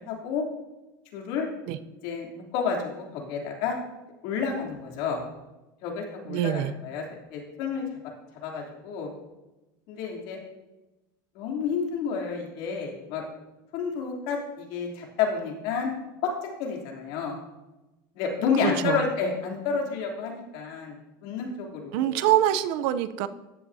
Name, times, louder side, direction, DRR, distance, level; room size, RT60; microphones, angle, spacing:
voice 1, 0.0-0.4 1.1-1.5 2.0-3.8 4.2-5.2 5.8-7.0 7.3-7.8 8.4-9.1 9.9-10.4 11.3-13.2 13.7-15.9 16.2-17.4 18.1-22.2, left 6 dB, 60° left, 0 dB, 3.2 m, -30 dB
voice 2, 6.3-6.7 18.6-19.1 21.9-23.3, right 12 dB, 60° right, 12 dB, 0.7 m, -25 dB
14.0 x 10.5 x 2.8 m, 1.0 s
supercardioid pair, 145°, 11 cm